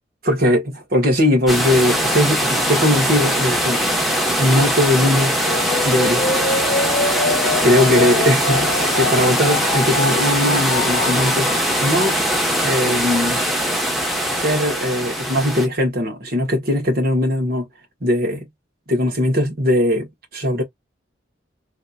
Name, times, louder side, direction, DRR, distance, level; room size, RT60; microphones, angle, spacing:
voice 1, 0.2-3.8 4.4-5.3 5.8-6.5 7.6-11.5 11.8-12.1 12.6-13.4 14.3-17.6 18.0-18.4 18.9-20.1 20.3-20.6, left 1 dB, 55° right, 1.7 m, -19 dB
sound 1, 1.5-15.7, equal, ahead, 0.9 m, -21 dB
sound 2, 4.9-11.9, left 3 dB, 50° left, 0.6 m, -25 dB
3.4 x 2.8 x 2.5 m
head